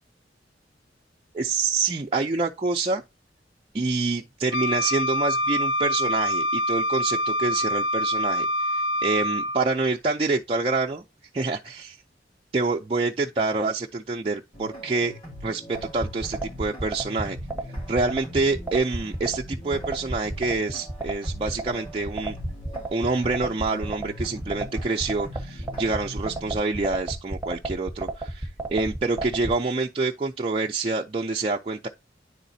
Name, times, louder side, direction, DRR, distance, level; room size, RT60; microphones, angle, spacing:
voice 1, 1.3-3.0 3.7-11.0 11.3-12.0 12.5-15.1 15.4-17.4 17.9-22.4 22.9-31.9, right 3 dB, 30° right, 0.4 m, -27 dB
Wind instrument woodwind instrument, 4.5-9.7, equal, 65° left, 0.3 m, -25 dB
sound 1, 14.5-26.6, equal, 30° left, 2.5 m, -42 dB
sound 2, 15.7-29.5, right 2 dB, 10° right, 1.0 m, -31 dB
9.8 x 4.0 x 2.7 m
head